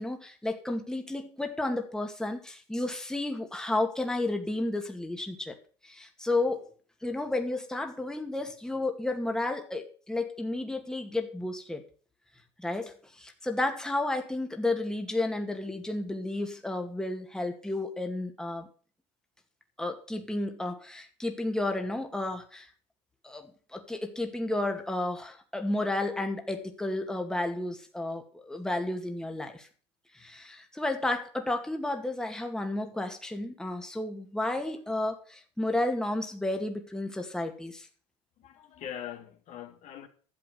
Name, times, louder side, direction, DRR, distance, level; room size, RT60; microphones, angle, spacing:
voice 1, 0.0-5.6 5.8-6.7 7.0-11.8 12.6-18.7 19.8-22.7 23.2-29.7 30.1-37.9, left 2 dB, 5° left, 2.3 m, -32 dB
voice 2, 38.4-40.1, left 10 dB, 55° left, 2.6 m, -42 dB
12.0 x 7.6 x 6.9 m
hypercardioid pair, 85°, 14 cm